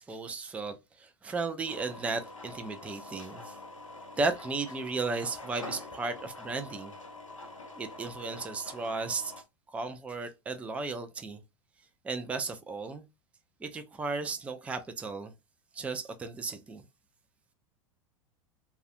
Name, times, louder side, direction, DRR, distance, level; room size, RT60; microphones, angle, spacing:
voice 1, 0.0-3.5 4.2-6.9 7.8-9.3 9.7-11.4 12.0-13.0 13.6-15.3 15.7-16.8, right 3 dB, 10° right, 0.3 m, -35 dB
sound 1, 1.6-9.4, left 2 dB, 85° left, 0.6 m, -45 dB
2.3 x 2.1 x 2.5 m
figure-of-eight pair, 85°, 16 cm